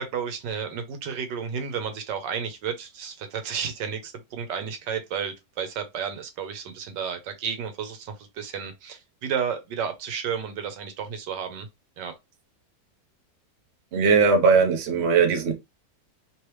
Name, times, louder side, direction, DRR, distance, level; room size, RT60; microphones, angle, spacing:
voice 1, 0.0-11.7 12.0-12.1, right 7 dB, 85° right, 1.5 m, -32 dB
voice 2, 13.9-15.5, right 5 dB, 50° right, 0.9 m, -19 dB
3.3 x 3.1 x 3.1 m
omnidirectional pair, 1.9 m